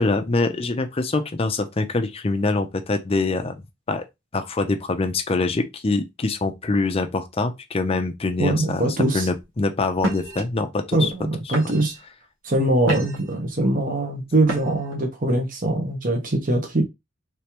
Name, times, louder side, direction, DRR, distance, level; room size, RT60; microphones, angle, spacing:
voice 1, 0.0-4.0 4.3-8.8 9.1-11.1, left 3 dB, 30° left, 0.5 m, -24 dB
voice 2, 8.4-9.3 10.9-11.9 12.4-16.8, right 1 dB, 45° right, 1.0 m, -22 dB
sound 1, 9.1-9.4 10.0-10.4 11.1-11.2 11.5-12.0 12.5-13.3 14.4-14.9, right 1 dB, 80° right, 1.6 m, -30 dB
3.4 x 3.3 x 3.0 m
head